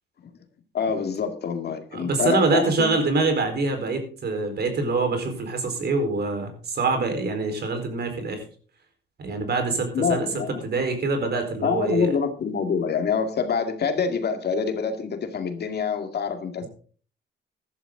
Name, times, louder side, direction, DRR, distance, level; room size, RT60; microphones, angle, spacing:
voice 1, 0.7-2.9 9.3-9.4 9.9-10.6 11.6-16.7, left 6 dB, 55° left, 2.2 m, -26 dB
voice 2, 1.9-8.4 9.2-10.3 10.6-12.1, right 3 dB, 55° right, 4.4 m, -25 dB
14.5 x 12.0 x 3.8 m
cardioid pair, 90°, 20 cm